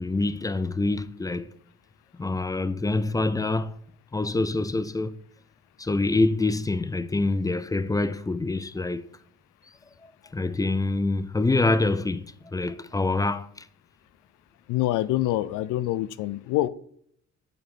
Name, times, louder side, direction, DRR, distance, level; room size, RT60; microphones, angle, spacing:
voice 1, 0.0-1.5 2.2-3.7 4.1-5.2 5.8-9.1 10.3-13.7, left 2 dB, 15° left, 0.3 m, -26 dB
voice 2, 14.7-16.7, left 15 dB, 85° left, 0.5 m, -25 dB
8.0 x 5.7 x 3.7 m
cardioid pair, 90°, 30 cm